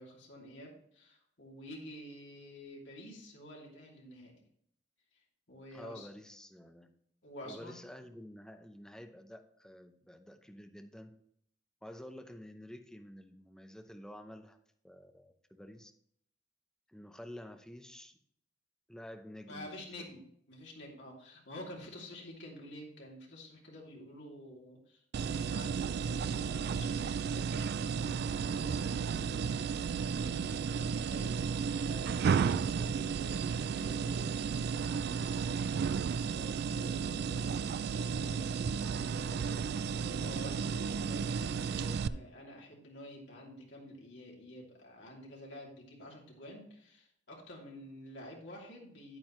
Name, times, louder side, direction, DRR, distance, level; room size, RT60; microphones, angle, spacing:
voice 1, 0.0-4.3 5.5-6.1 7.2-7.8 19.5-20.2 20.5-49.2, equal, 70° left, -2 dB, 2.9 m, -49 dB
voice 2, 5.7-6.9 7.4-11.1 11.8-14.6 14.8-15.9 16.9-18.2 18.9-20.2, equal, 5° left, 6 dB, 0.7 m, -50 dB
sound 1, 25.1-42.1, right 6 dB, 60° right, 0.3 m, -33 dB
9.4 x 8.8 x 3.1 m, 0.69 s
head